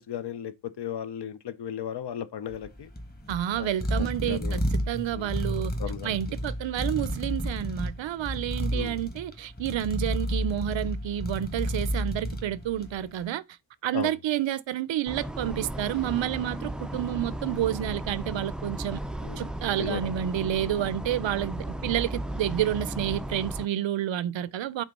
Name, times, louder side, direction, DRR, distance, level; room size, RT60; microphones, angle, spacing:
voice 1, 0.0-2.9 3.6-3.7 4.2-4.6 5.1-5.3 5.8-6.2 8.7-9.0 13.9-14.1 19.2-19.4 19.8-20.1, left 9 dB, 60° left, 0.8 m, -35 dB
sound 1, 2.5-13.1, equal, 20° left, 1.4 m, -31 dB
voice 2, 3.3-5.7 6.0-13.4 13.8-19.0 19.4-24.8, right 12 dB, 70° right, 0.6 m, -29 dB
sound 2, 15.1-23.7, right 1 dB, ahead, 0.3 m, -35 dB
6.1 x 3.9 x 5.3 m
wide cardioid pair, 130°, 48 cm